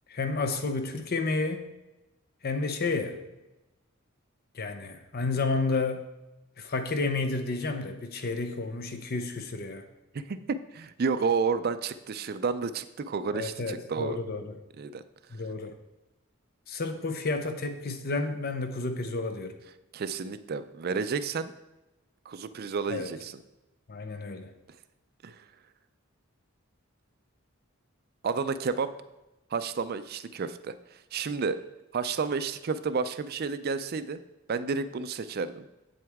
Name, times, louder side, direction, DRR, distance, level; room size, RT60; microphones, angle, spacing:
voice 1, 0.1-1.7 2.4-3.2 4.5-6.1 6.6-9.8 13.3-14.5 15.3-15.8 16.7-19.6 22.9-23.1 23.9-24.5, left 3 dB, 50° left, 8 dB, 0.8 m, -31 dB
voice 2, 10.1-14.2 14.8-15.0 19.9-21.5 22.3-23.4 25.2-25.3 28.2-28.9 29.5-30.7 31.1-31.6 31.9-34.2 34.5-35.7, right 5 dB, 50° right, 12 dB, 0.4 m, -31 dB
8.0 x 7.7 x 3.5 m, 1.0 s
head